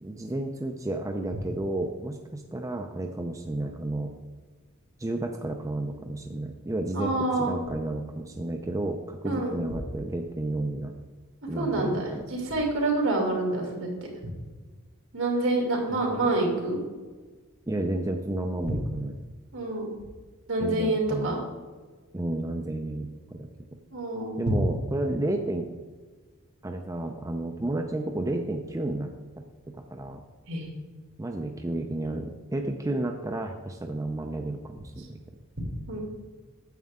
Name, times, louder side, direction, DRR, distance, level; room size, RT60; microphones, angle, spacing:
voice 1, 0.0-4.1 5.0-10.9 11.5-12.2 15.9-16.2 17.7-19.1 20.6-21.3 22.1-23.5 24.4-25.7 26.6-29.1 29.7-30.2 31.2-35.2, right 1 dB, 15° right, 3 dB, 0.4 m, -32 dB
voice 2, 6.9-7.6 9.2-9.6 11.5-13.9 15.1-16.8 19.5-19.9 20.5-21.4 23.9-24.5 30.5-30.7 35.9-36.0, right 2 dB, 65° right, 0 dB, 2.7 m, -27 dB
9.2 x 7.6 x 3.6 m, 1.4 s
head